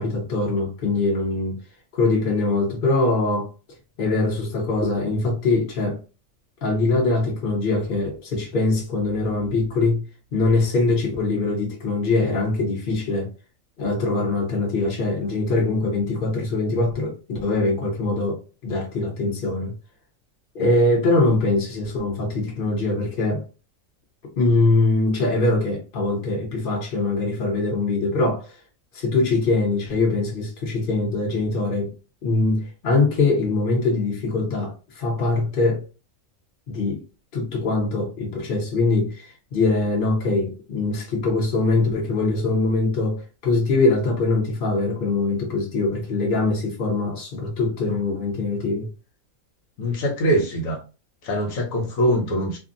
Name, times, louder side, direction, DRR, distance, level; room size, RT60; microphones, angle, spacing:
voice 1, 0.0-1.6 1.9-3.5 4.0-6.0 6.6-10.0 10.3-13.3 13.8-19.7 20.5-23.4 24.4-28.5 28.9-31.9 32.2-35.8 36.7-37.0 37.3-48.9, left 2 dB, 45° left, 1.0 m, -22 dB
voice 2, 49.8-50.8 51.2-52.6, equal, 90° left, 1.2 m, -23 dB
2.7 x 2.5 x 2.5 m
omnidirectional pair, 1.4 m